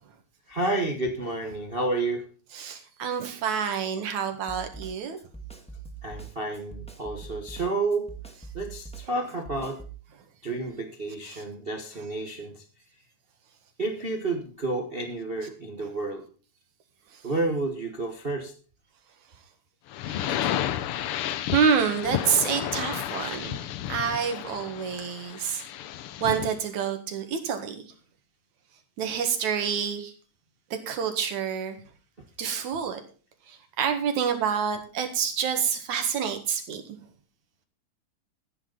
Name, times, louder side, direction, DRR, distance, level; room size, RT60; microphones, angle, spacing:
voice 1, 0.5-2.3 6.0-8.1 8.5-9.8 10.4-12.6 13.8-16.3 17.2-18.5, right 2 dB, 50° right, 4 dB, 0.6 m, -30 dB
voice 2, 2.5-5.2 11.3-11.4 20.1-20.5 21.5-23.6 23.9-25.6 26.2-27.8 29.0-30.1 30.9-31.8 32.4-33.0 33.5-36.8, right 7 dB, 70° right, 6 dB, 3.1 m, -28 dB
Snare drum, 4.5-10.0, right 5 dB, 5° left, 1.0 m, -42 dB
sound 1, 19.9-26.6, left 11 dB, 80° left, 1.3 m, -32 dB
15.0 x 9.9 x 4.0 m, 0.39 s
omnidirectional pair, 3.4 m